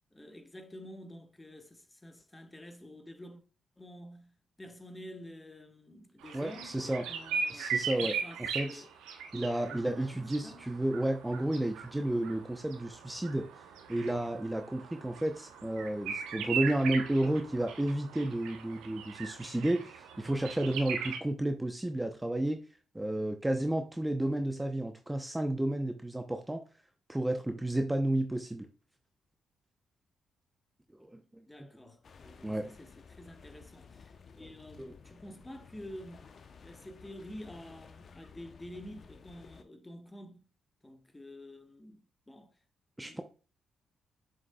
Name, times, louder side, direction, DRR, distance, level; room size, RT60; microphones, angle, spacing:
voice 1, 0.1-3.4 3.8-7.7 8.0-8.9 9.9-10.6 31.5-36.2 36.6-40.4 40.8-42.6 43.0-43.2, left 1 dB, 15° left, 1.4 m, -49 dB
sound 1, 6.2-21.2, right 6 dB, 80° right, 0.9 m, -39 dB
voice 2, 6.3-7.0 7.5-8.8 9.3-13.5 13.9-22.6 22.9-26.6 27.1-28.7 31.0-31.4 32.4-32.7 34.8-34.9 43.0-43.2, right 1 dB, 10° right, 0.8 m, -32 dB
sound 2, 32.0-39.6, left 6 dB, 55° left, 0.8 m, -54 dB
7.3 x 6.4 x 2.3 m
hypercardioid pair, 45°, 0 cm